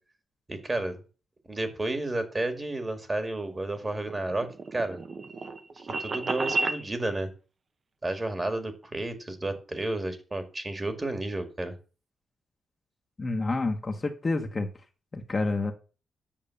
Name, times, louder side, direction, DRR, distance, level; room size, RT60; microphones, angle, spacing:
voice 1, 0.5-1.0 1.5-5.0 5.7-7.3 8.0-11.8, right 2 dB, 20° right, 8 dB, 1.8 m, -31 dB
sound 1, 3.8-6.8, right 3 dB, 35° right, 1.0 m, -32 dB
voice 2, 13.2-14.7 15.1-15.7, left 3 dB, 25° left, 4 dB, 1.3 m, -28 dB
8.9 x 6.5 x 7.0 m, 0.35 s
cardioid pair, 140°, 0 cm